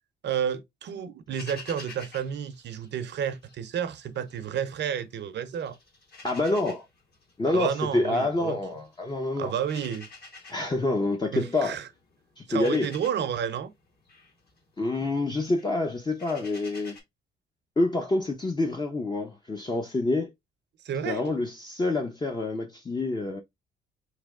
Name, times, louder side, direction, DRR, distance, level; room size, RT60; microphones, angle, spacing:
voice 1, 0.2-5.8 7.5-8.6 9.4-10.1 11.3-11.9 12.5-13.7 20.8-21.2, right 8 dB, 60° right, 0.7 m, -31 dB
sound 1, 1.3-3.6 3.9-5.2 5.5-17.0, left 3 dB, 55° left, 2.0 m, -49 dB
voice 2, 6.2-6.8 7.4-9.5 10.5-11.7 12.4-12.9 14.8-17.0 17.8-20.3 21.0-23.4, left 2 dB, 20° left, 0.7 m, -27 dB
3.3 x 3.1 x 3.5 m
cardioid pair, 90°, 20 cm